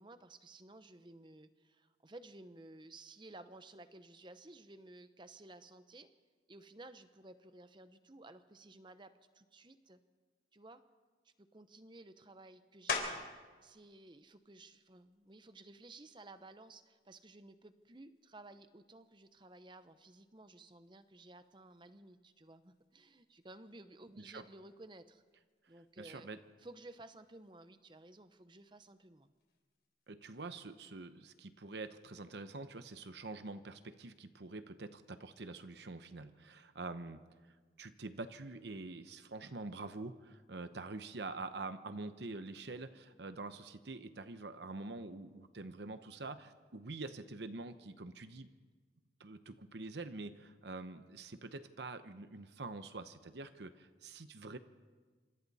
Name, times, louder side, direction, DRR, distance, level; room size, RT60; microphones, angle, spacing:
voice 1, 0.0-6.1 6.5-10.0 10.5-10.8 11.2-13.3 13.6-25.2 25.7-26.3 26.6-29.3, right 2 dB, 25° right, 11 dB, 0.9 m, -55 dB
sound 1, 12.9-13.5 14.0-18.5 19.0-24.2 24.4-30.1, left 4 dB, 60° left, 3.7 m, -47 dB
voice 2, 26.0-26.4 30.1-37.2 37.8-48.5 49.2-54.6, right 3 dB, 70° right, 10 dB, 0.9 m, -46 dB
27.0 x 25.5 x 4.2 m, 1.4 s
head